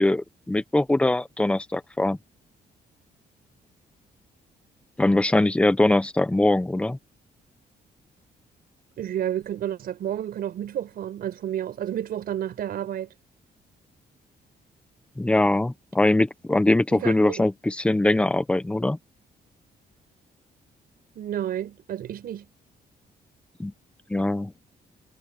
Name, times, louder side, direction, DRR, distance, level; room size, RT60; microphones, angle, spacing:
voice 1, 0.0-2.2 5.0-7.0 15.2-19.0 23.6-23.7 24.1-24.5, left 2 dB, 5° left, 0.9 m, -22 dB
voice 2, 9.0-13.1 16.9-17.4 21.2-22.5, right 10 dB, 65° right, 5.0 m, -31 dB
cardioid pair, 165°, 17 cm